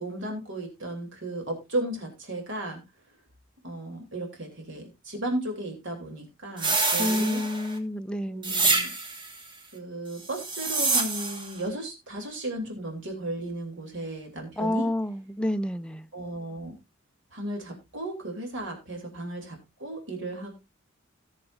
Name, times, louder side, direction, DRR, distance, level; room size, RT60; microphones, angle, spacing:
voice 1, 0.0-2.8 3.6-7.4 8.2-8.9 9.7-14.9 16.1-16.8 17.3-20.5, right 1 dB, 65° right, 3.1 m, -35 dB
sound 1, 6.6-7.8 8.4-9.3 10.3-11.5, right 3 dB, 25° right, 1.6 m, -26 dB
voice 2, 7.0-8.6 14.6-16.1, left 1 dB, 5° left, 0.5 m, -29 dB
18.0 x 7.0 x 2.5 m
head